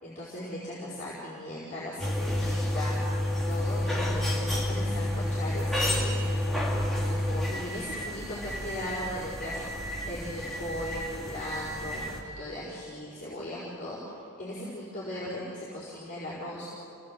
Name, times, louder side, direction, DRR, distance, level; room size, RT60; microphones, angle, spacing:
voice 1, 0.0-3.2 3.5-6.4 6.7-14.0 14.4-16.7, left 1 dB, 35° left, -9 dB, 5.1 m, -38 dB
sound 1, 2.0-12.2, left 1 dB, ahead, 2.5 m, -30 dB
28.5 x 18.5 x 7.8 m, 2.9 s
head